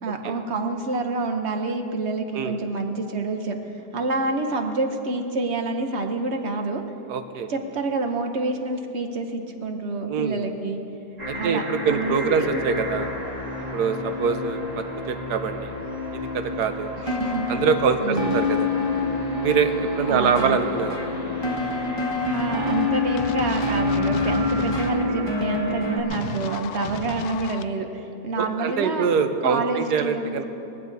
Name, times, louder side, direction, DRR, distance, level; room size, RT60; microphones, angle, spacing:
voice 1, 0.0-3.6 3.9-6.8 7.5-10.8 11.3-11.6 11.9-12.6 17.0-17.5 18.0-18.4 20.1-20.6 21.7-29.1 29.4-30.3, right 3 dB, 45° right, 5 dB, 1.2 m, -27 dB
voice 2, 7.1-7.5 10.1-10.4 11.3-13.1 13.7-15.7 16.3-16.9 17.5-18.7 19.4-21.0 28.4-30.5, right 6 dB, 75° right, 8 dB, 1.4 m, -24 dB
sound 1, 11.2-26.3, left 2 dB, 25° right, 1.8 m, -33 dB
sound 2, 17.1-26.0, left 3 dB, 15° left, 1.5 m, -27 dB
sound 3, 23.2-24.9 26.1-27.6, left 9 dB, 75° left, 1.1 m, -35 dB
19.5 x 15.0 x 4.1 m, 2.9 s
omnidirectional pair, 1.8 m